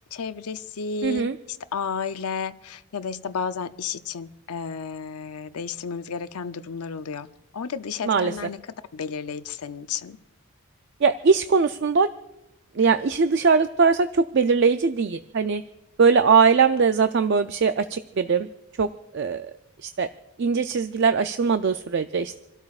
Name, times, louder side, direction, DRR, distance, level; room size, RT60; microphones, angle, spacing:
voice 1, 0.1-7.3 7.5-8.6 8.9-10.2, left 5 dB, 85° left, 0.6 m, -32 dB
voice 2, 1.0-1.3 8.0-8.3 11.0-12.1 12.8-15.6 16.0-18.5 18.8-18.9 19.1-19.4 19.8-20.1 20.4-22.4, right 5 dB, 50° right, 0.4 m, -21 dB
28.0 x 12.5 x 2.4 m
head